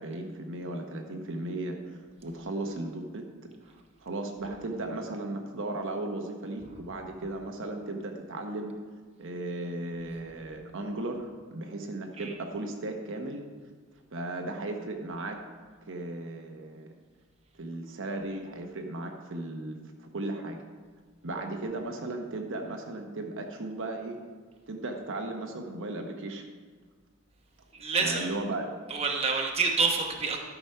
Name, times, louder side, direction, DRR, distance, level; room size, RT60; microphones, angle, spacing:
voice 1, 0.0-3.2 4.0-8.8 9.2-13.4 14.1-15.4 15.9-16.9 17.5-20.6 21.2-24.2 24.7-26.5 28.0-28.7, right 2 dB, 60° right, 3 dB, 1.0 m, -36 dB
voice 2, 27.7-28.3 28.9-30.4, right 4 dB, 25° right, 1 dB, 1.0 m, -27 dB
12.5 x 6.0 x 5.6 m, 1.5 s
head